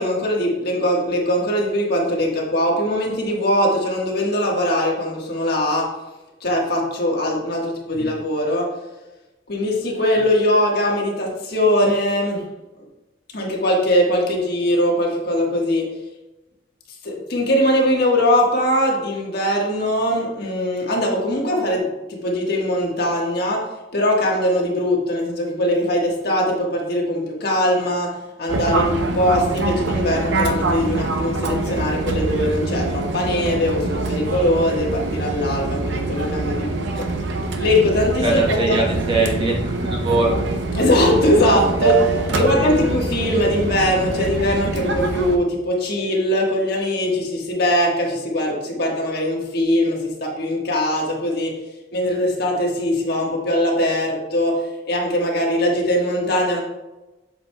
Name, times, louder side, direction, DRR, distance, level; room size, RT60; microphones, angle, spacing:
voice 1, 0.0-5.9 6.4-8.7 9.5-12.4 13.3-15.9 17.0-23.6 23.9-37.1 37.6-38.8 40.7-51.6 51.9-56.6, left 1 dB, 55° left, -1 dB, 1.4 m, -21 dB
Fixed-wing aircraft airplane, 28.5-45.4, right 2 dB, 70° right, 0.7 m, -24 dB
voice 2, 38.2-40.4 41.3-41.4 42.3-42.7, right 2 dB, 25° right, -1 dB, 1.0 m, -22 dB
7.7 x 6.9 x 2.2 m, 1.1 s
head